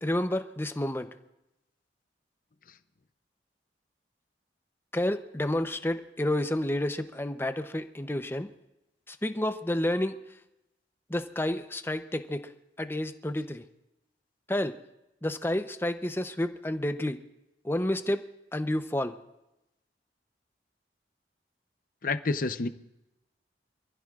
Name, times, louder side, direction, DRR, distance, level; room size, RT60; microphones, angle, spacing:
voice 1, 0.0-1.1 4.9-8.5 9.1-10.1 11.1-12.5 12.8-13.6 14.5-14.8 15.2-17.2 17.6-18.2 18.5-19.1, left 1 dB, 15° left, 9 dB, 0.7 m, -30 dB
voice 2, 22.0-22.7, left 3 dB, 50° left, 11 dB, 0.7 m, -28 dB
27.0 x 15.0 x 2.5 m, 0.91 s
head